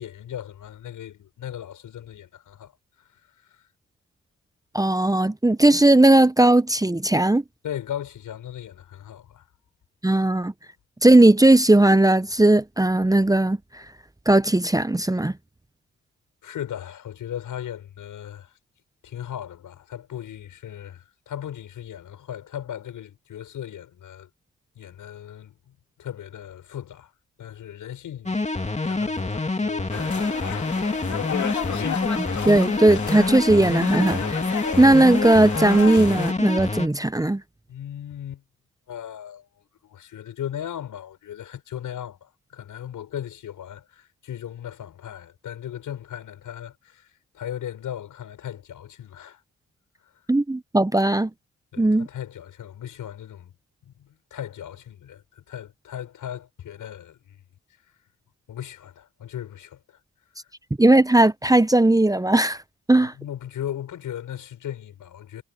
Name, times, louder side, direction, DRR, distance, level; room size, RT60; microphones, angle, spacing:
voice 1, 0.0-3.6 7.6-9.4 16.4-18.6 19.0-24.3 24.7-27.1 27.4-28.4 28.8-31.1 37.7-38.4 38.9-49.4 51.7-53.5 53.8-57.4 58.5-60.0 62.9-65.4, left 10 dB, 85° left, 6.8 m, -37 dB
voice 2, 4.7-7.4 10.0-10.5 11.0-13.6 14.3-15.3 32.2-34.4 34.8-37.4 50.3-51.3 51.8-52.1 60.8-62.6 62.9-63.1, right 2 dB, 10° right, 0.9 m, -17 dB
sound 1, 28.3-36.9, left 3 dB, 20° left, 2.4 m, -27 dB
sound 2, 29.9-36.3, left 8 dB, 65° left, 2.3 m, -32 dB
cardioid pair, 55°, 31 cm